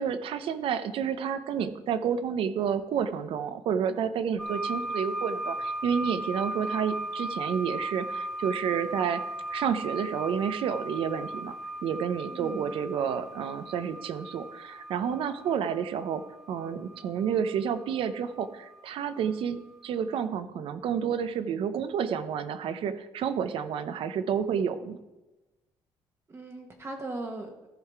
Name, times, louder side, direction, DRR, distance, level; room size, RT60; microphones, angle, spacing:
voice 1, 0.0-9.2 9.5-11.6 11.8-16.2 16.5-25.0, right 7 dB, 70° right, 12 dB, 0.8 m, -30 dB
sound 1, 4.4-19.3 20.1-20.2, right 1 dB, 5° left, 0.7 m, -37 dB
voice 2, 12.3-12.7 26.3-27.7, right 2 dB, 25° right, 2 dB, 1.2 m, -39 dB
14.0 x 5.7 x 4.7 m, 1.1 s
cardioid pair, 150°, 10 cm